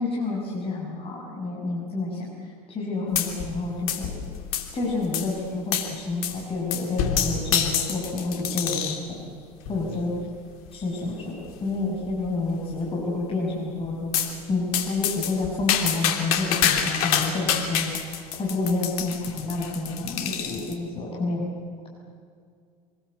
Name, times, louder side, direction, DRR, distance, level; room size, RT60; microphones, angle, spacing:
voice 1, 0.0-2.3 2.7-4.1 4.7-9.2 9.7-10.1 10.7-14.2 14.5-18.0 18.4-21.5, left 3 dB, 30° left, -4 dB, 6.6 m, -29 dB
sound 1, 3.2-3.6 3.9-4.8 5.1-5.3 5.7-5.9 6.2-6.4 6.7-9.1 9.7-10.0 10.7-10.8 11.1-11.2 11.5-11.6 12.0-12.5 14.1-14.3 14.7-20.7, left 8 dB, 70° left, 3.1 m, -27 dB
26.5 x 21.0 x 8.4 m, 2.2 s
hypercardioid pair, 75°, 19 cm